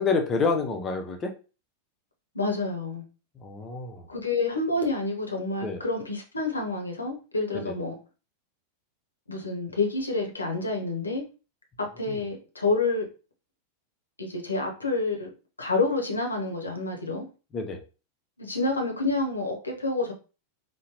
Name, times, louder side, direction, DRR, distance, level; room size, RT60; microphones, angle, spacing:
voice 1, 0.0-1.3 3.4-4.1 5.6-5.8 7.5-7.8 12.1-12.2 17.5-17.8, left 4 dB, 25° left, 4 dB, 0.7 m, -28 dB
voice 2, 2.3-3.0 4.1-8.0 9.3-11.2 11.8-13.1 14.2-15.3 15.6-17.3 18.4-20.1, left 3 dB, 80° left, 2 dB, 0.8 m, -28 dB
3.8 x 2.1 x 2.9 m, 0.34 s
figure-of-eight pair, 90°, 0 cm